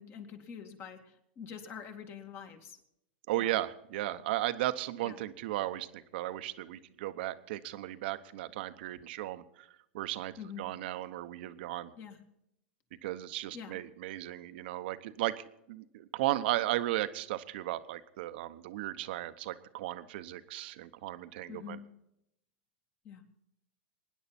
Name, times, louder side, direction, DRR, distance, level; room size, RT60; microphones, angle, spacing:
voice 1, 0.0-2.8 3.4-3.5 5.0-5.2 10.4-10.7 12.0-12.2 13.5-13.8 21.5-21.8 23.0-23.2, left 7 dB, 40° left, 5 dB, 2.2 m, -45 dB
voice 2, 3.3-9.7 9.9-11.9 13.0-21.8, right 15 dB, 65° right, 11 dB, 0.9 m, -35 dB
24.0 x 10.0 x 4.3 m, 0.80 s
hypercardioid pair, 115°, 6 cm